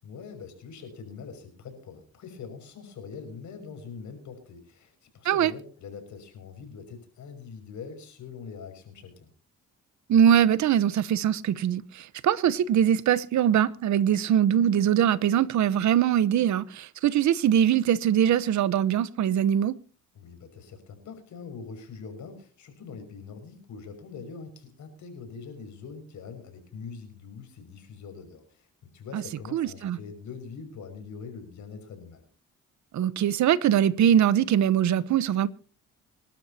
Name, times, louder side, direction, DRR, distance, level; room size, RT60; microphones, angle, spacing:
voice 1, 0.0-9.3 20.1-32.3, left 5 dB, 70° left, 6.0 m, -43 dB
voice 2, 10.1-19.8 29.1-29.2 29.5-30.0 32.9-35.5, right 10 dB, 70° right, 1.0 m, -22 dB
26.0 x 12.0 x 2.9 m
cardioid pair, 90°, 30 cm